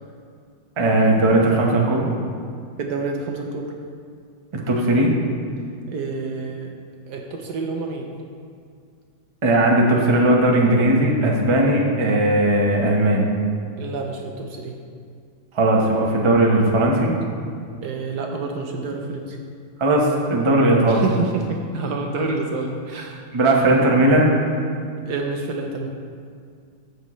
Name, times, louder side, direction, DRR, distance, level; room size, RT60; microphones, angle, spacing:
voice 1, 0.8-2.1 4.5-5.1 9.4-13.3 15.5-17.1 19.8-21.0 23.3-24.3, right 1 dB, 25° right, -1 dB, 0.6 m, -18 dB
voice 2, 2.8-3.7 5.9-6.7 7.1-8.1 13.8-14.8 17.8-19.4 20.9-23.2 25.1-25.9, right 3 dB, 65° right, 2 dB, 1.1 m, -28 dB
14.5 x 6.4 x 3.1 m, 2.2 s
omnidirectional pair, 2.1 m